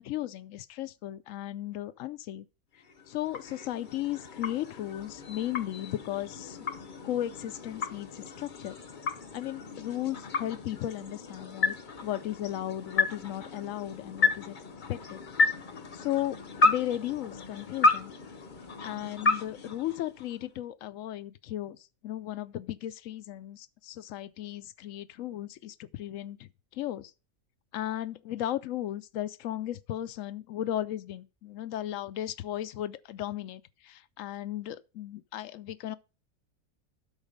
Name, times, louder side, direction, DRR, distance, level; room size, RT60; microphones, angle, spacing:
voice 1, 0.0-2.5 3.1-6.6 7.0-8.7 9.3-11.8 12.0-14.6 14.9-15.2 15.9-16.4 16.6-18.1 18.8-27.1 27.7-36.0, left 13 dB, 70° left, 1.0 m, -35 dB
sound 1, 2.8-20.5, left 3 dB, 40° left, 0.9 m, -32 dB
12.0 x 4.1 x 5.2 m
omnidirectional pair, 1.4 m